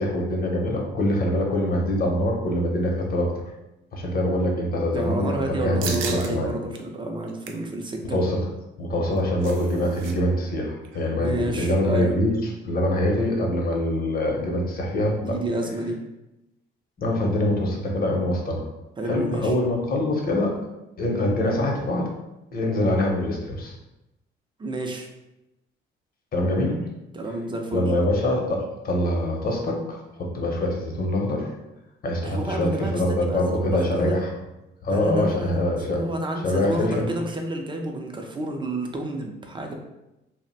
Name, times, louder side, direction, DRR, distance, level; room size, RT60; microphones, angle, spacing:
voice 1, 0.0-3.3 3.9-6.5 8.1-8.4 8.8-12.3 12.6-15.4 17.0-18.7 19.0-20.5 21.0-22.1 22.5-23.7 26.3-26.8 27.7-31.5 32.0-34.3 34.8-36.0 36.4-37.1, left 1 dB, 50° left, 0 dB, 0.8 m, -24 dB
voice 2, 4.9-8.2 11.1-12.1 15.1-16.0 19.0-19.5 24.6-25.1 27.1-27.9 32.2-34.2 34.9-35.6 35.9-39.7, right 1 dB, 25° right, 3 dB, 0.5 m, -30 dB
sound 1, 5.8-6.3 6.7-6.8 7.2-7.7 8.9-10.1 10.4-10.5 10.8-11.1, right 5 dB, 90° right, 0.4 m, -35 dB
2.5 x 2.1 x 4.0 m, 0.93 s
cardioid pair, 90°, 20 cm